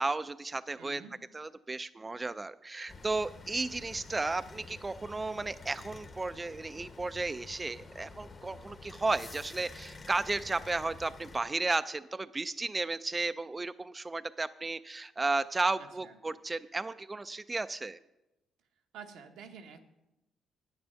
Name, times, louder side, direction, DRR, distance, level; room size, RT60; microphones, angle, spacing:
voice 1, 0.0-1.0 1.3-18.0, right 3 dB, 20° right, 13 dB, 0.3 m, -34 dB
voice 2, 0.8-1.2 15.8-16.2 18.9-19.8, right 6 dB, 85° right, 4 dB, 1.1 m, -49 dB
sound 1, 2.9-11.4, left 3 dB, 40° left, 1.0 m, -49 dB
9.5 x 8.8 x 5.7 m, 0.94 s
cardioid pair, 90°, 0 cm